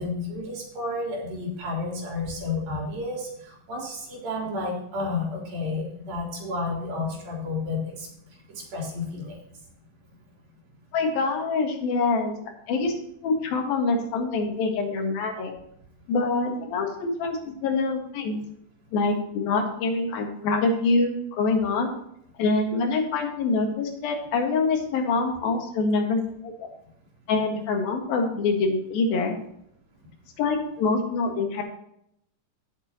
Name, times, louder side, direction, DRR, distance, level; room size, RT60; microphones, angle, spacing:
voice 1, 0.0-8.1 8.5-9.4, left 3 dB, 85° right, -2 dB, 5.4 m, -31 dB
voice 2, 10.9-12.4 12.7-12.9 13.2-15.5 16.1-18.4 18.9-21.9 22.4-26.7 27.3-29.4 30.4-31.6, left 3 dB, 85° left, 2 dB, 3.6 m, -25 dB
17.0 x 7.0 x 3.0 m, 0.74 s
omnidirectional pair, 4.1 m